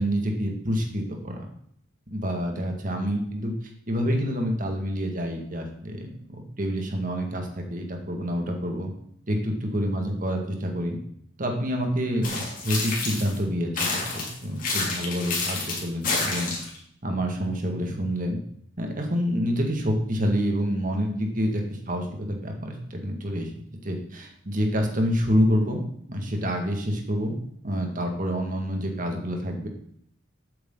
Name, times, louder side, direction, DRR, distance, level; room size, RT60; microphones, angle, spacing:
voice 1, 0.0-1.5 2.1-3.5 3.9-8.9 9.3-11.0 11.4-16.5 17.0-18.4 18.8-23.5 23.8-25.8 26.1-27.3 27.6-29.7, equal, 40° right, 2 dB, 2.1 m, -27 dB
sound 1, 12.2-13.4 13.8-16.8, left 3 dB, 45° left, 3.3 m, -29 dB
12.0 x 8.8 x 4.0 m, 0.66 s
head